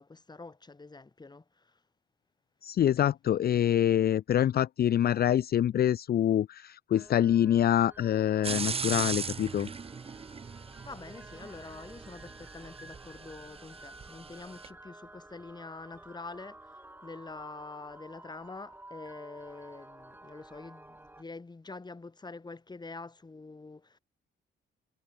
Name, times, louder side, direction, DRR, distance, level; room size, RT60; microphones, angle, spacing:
voice 1, 0.0-1.8 10.8-24.0, left 3 dB, 20° left, 2.8 m, -46 dB
voice 2, 2.6-9.7, left 10 dB, 50° left, 0.6 m, -25 dB
sound 1, 6.9-21.2, right 1 dB, 10° right, 2.7 m, -52 dB
sound 2, 8.4-14.7, right 5 dB, 30° right, 0.9 m, -39 dB
cardioid pair, 90°, 20 cm